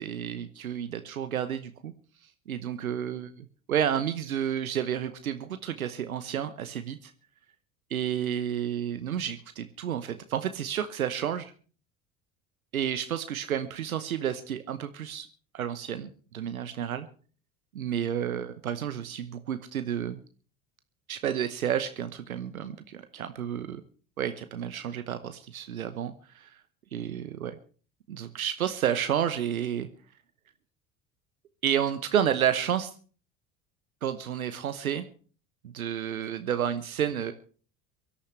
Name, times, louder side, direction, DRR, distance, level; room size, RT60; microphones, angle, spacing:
voice 1, 0.0-1.9 2.5-7.1 7.9-11.5 12.7-15.3 15.5-17.1 17.7-20.2 21.1-23.8 24.2-26.6 26.9-27.6 28.1-29.9 31.6-32.9 34.0-35.0 35.6-37.3, right 9 dB, 80° right, 10 dB, 1.0 m, -31 dB
23.5 x 13.0 x 3.2 m, 0.40 s
figure-of-eight pair, 65°, 42 cm